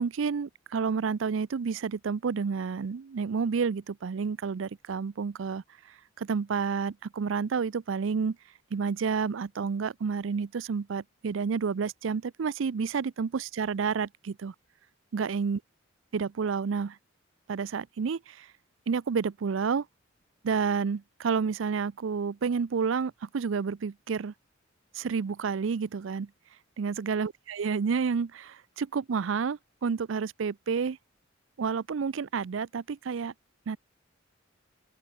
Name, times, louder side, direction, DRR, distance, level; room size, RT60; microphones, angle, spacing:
voice 1, 0.0-5.6 6.2-8.4 8.7-14.5 15.1-15.6 16.1-17.0 17.5-18.5 18.9-19.9 20.4-24.3 24.9-26.3 26.8-31.0 31.6-33.3 33.7-33.8, right 5 dB, 70° right, 0.5 m, -30 dB
open air
head